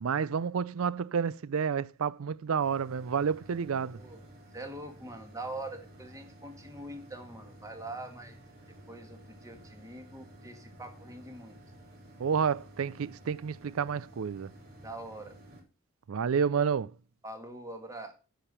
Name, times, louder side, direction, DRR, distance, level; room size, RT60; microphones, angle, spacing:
voice 1, 0.0-4.0 12.2-14.5 16.1-16.9, right 6 dB, 75° right, 0.4 m, -30 dB
sound 1, 2.6-15.6, right 1 dB, 45° right, 3.9 m, -53 dB
voice 2, 3.9-4.2 4.5-8.4 8.9-11.6 14.8-15.4 17.2-18.1, right 2 dB, 15° right, 1.8 m, -43 dB
9.0 x 7.0 x 5.5 m
head